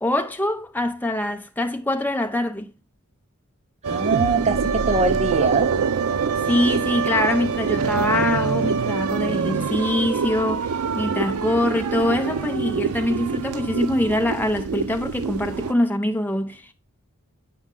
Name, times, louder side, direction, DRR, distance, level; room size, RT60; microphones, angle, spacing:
voice 1, 0.0-2.7 6.5-16.7, left 1 dB, 10° left, 0.7 m, -24 dB
sound 1, 3.8-15.7, right 5 dB, 85° right, 0.5 m, -25 dB
voice 2, 3.9-5.7, right 3 dB, 30° right, 0.6 m, -22 dB
8.6 x 5.2 x 3.7 m
head